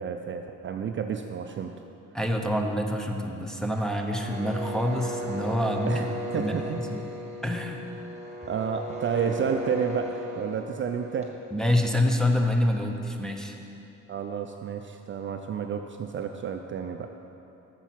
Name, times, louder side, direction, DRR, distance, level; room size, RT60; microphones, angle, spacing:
voice 1, 0.0-1.7 5.9-6.1 6.3-6.8 8.5-11.3 14.1-17.1, right 7 dB, 40° right, 5 dB, 0.4 m, -31 dB
voice 2, 2.1-6.0 6.4-6.5 6.9-7.0 7.4-7.9 9.3-9.4 11.5-13.5, left 1 dB, ahead, 1 dB, 0.7 m, -26 dB
sound 1, 4.1-11.9, equal, 20° right, 1.4 m, -36 dB
7.0 x 6.9 x 5.8 m, 2.9 s
cardioid pair, 90°, 30 cm